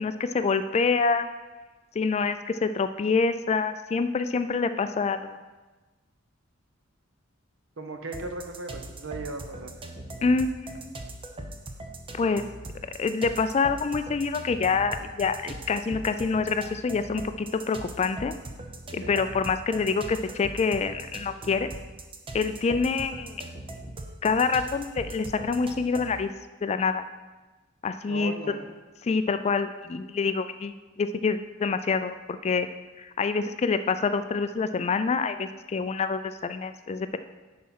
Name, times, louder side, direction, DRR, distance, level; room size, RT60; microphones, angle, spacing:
voice 1, 0.0-1.3 1.9-5.4 10.2-11.0 12.1-12.4 13.0-18.3 18.9-21.7 22.3-23.5 24.2-26.3 26.6-27.0 27.8-28.3 29.0-32.1 32.4-32.7 33.0-37.2, left 4 dB, 30° left, 10 dB, 0.3 m, -26 dB
voice 2, 7.8-9.7 19.0-19.1 28.1-28.7, right 2 dB, 60° right, 6 dB, 0.9 m, -37 dB
sound 1, 8.1-26.2, right 2 dB, 25° right, 0.7 m, -40 dB
10.5 x 4.3 x 5.6 m, 1.2 s
head